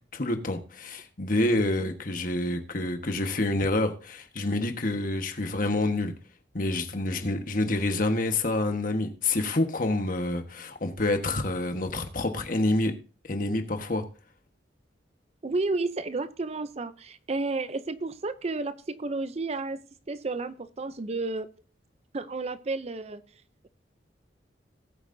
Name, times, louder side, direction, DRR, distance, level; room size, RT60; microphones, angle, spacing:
voice 1, 0.1-6.1 6.5-12.9 13.2-14.0, left 2 dB, 45° left, 1.3 m, -27 dB
voice 2, 15.4-21.5 22.1-23.2, right 3 dB, 35° right, 0.5 m, -31 dB
18.5 x 8.1 x 2.7 m
head